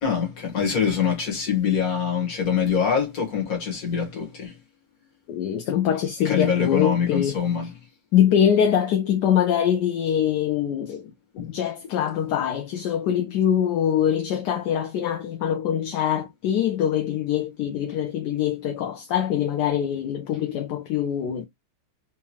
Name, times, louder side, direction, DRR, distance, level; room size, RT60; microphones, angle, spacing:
voice 1, 0.0-4.5 6.2-7.7 11.4-11.5, left 7 dB, 50° left, 1.7 m, -24 dB
voice 2, 5.3-7.4 8.1-11.1 11.4-21.4, left 9 dB, 70° left, 1.1 m, -23 dB
3.5 x 3.0 x 2.8 m
omnidirectional pair, 2.1 m